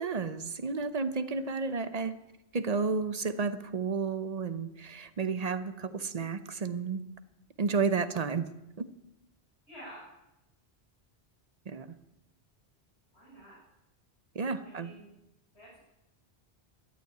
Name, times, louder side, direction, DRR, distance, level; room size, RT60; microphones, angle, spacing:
voice 1, 0.0-2.2 2.5-7.1 7.6-8.5 8.8-8.9 11.7-11.9 14.3-14.9, right 5 dB, 40° right, 12 dB, 0.9 m, -32 dB
voice 2, 9.7-10.1 13.1-13.6 14.6-15.0 15.5-15.8, equal, 85° left, -7 dB, 7.4 m, -49 dB
13.5 x 9.7 x 9.5 m, 0.93 s
omnidirectional pair, 1.1 m